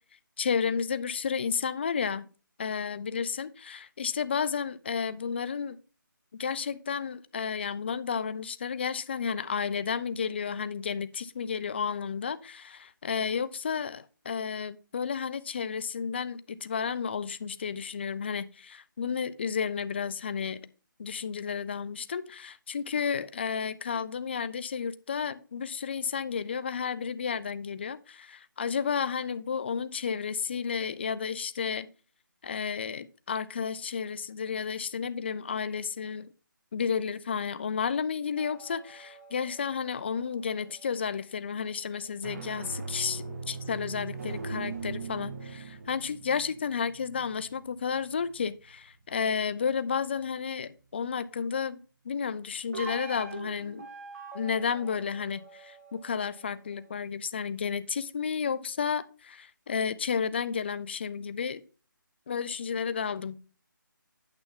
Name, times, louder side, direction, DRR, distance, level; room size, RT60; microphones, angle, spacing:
voice 1, 0.4-2.3 2.6-5.8 6.4-20.7 21.0-31.9 32.4-36.3 36.7-53.8 54.3-61.6 62.3-63.4, left 6 dB, 30° left, 15 dB, 0.4 m, -32 dB
sound 1, 38.4-41.0 42.0-48.9 52.7-56.9, right 3 dB, 40° right, 1.8 m, -42 dB
8.9 x 6.8 x 3.6 m, 0.37 s
figure-of-eight pair, 165°, 11 cm